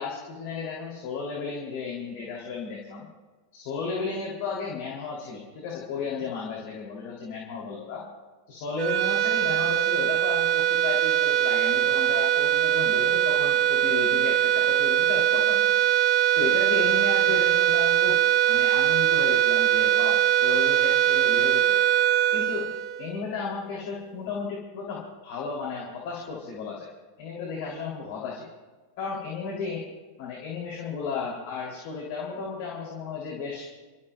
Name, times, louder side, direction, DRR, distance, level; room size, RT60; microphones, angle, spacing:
voice 1, 0.0-3.1 3.5-8.0 8.5-15.7 16.4-18.2 18.5-21.8 22.3-26.9 27.2-28.5 29.0-29.9 30.2-33.7, left 5 dB, 50° left, -3 dB, 3.0 m, -34 dB
sound 1, 8.8-23.3, right 11 dB, 40° right, 0.6 m, -22 dB
29.0 x 13.0 x 2.3 m, 1.3 s
figure-of-eight pair, 90°, 0 cm